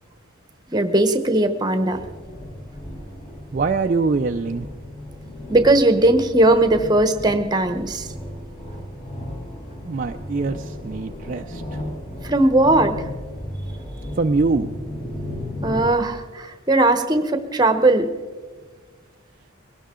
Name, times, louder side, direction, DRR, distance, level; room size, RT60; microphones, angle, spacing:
voice 1, 0.7-2.0 5.5-8.1 12.2-13.1 15.6-18.1, right 2 dB, 20° right, 8 dB, 0.9 m, -18 dB
sound 1, 1.9-15.9, left 1 dB, 30° left, 1.4 m, -35 dB
voice 2, 3.5-4.7 9.8-11.8 14.2-14.7, right 4 dB, 40° right, 5 dB, 0.4 m, -23 dB
21.0 x 17.5 x 3.7 m, 1.4 s
head